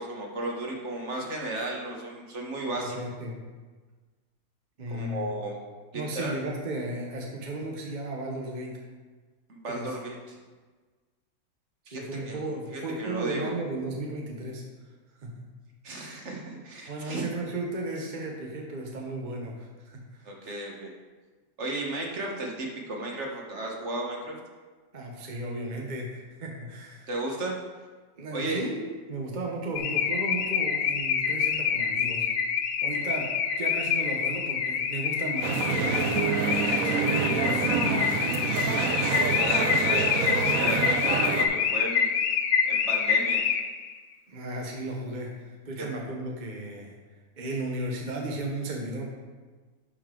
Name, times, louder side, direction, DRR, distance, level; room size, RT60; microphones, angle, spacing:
voice 1, 0.0-3.0 4.9-5.6 5.9-6.3 9.5-10.4 11.9-12.4 12.7-13.5 15.8-17.3 20.2-20.9 21.6-24.3 27.1-27.5 28.3-28.6 39.3-42.1 42.7-43.4, right 2 dB, 50° right, -1 dB, 1.5 m, -34 dB
voice 2, 2.8-3.4 4.8-5.3 5.9-8.8 9.7-10.0 11.9-14.6 15.2-15.5 16.9-20.6 24.9-27.1 28.2-32.3 32.8-33.3 33.6-36.2 36.8-39.0 44.3-46.9 47.4-49.1, right 2 dB, 35° right, 0 dB, 0.9 m, -35 dB
Car / Alarm, 29.8-43.9, left 7 dB, 80° left, 1.1 m, -27 dB
sound 1, 35.4-41.5, right 6 dB, 70° right, 1.1 m, -27 dB
11.0 x 5.4 x 3.8 m, 1.4 s
omnidirectional pair, 1.6 m